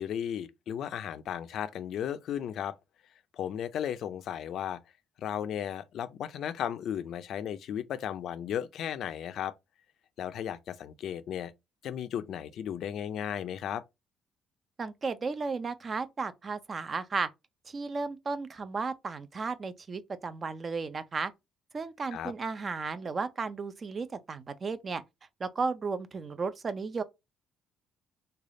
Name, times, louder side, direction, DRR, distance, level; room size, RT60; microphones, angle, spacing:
voice 1, 0.0-2.8 3.3-4.8 5.2-9.5 10.2-11.5 11.8-13.8 22.1-22.3, left 9 dB, 60° left, 0.4 m, -35 dB
voice 2, 14.8-17.3 17.7-21.3 21.7-25.0 25.4-27.0, right 4 dB, 30° right, 0.4 m, -34 dB
3.3 x 2.3 x 3.7 m
cardioid pair, 145°, 0 cm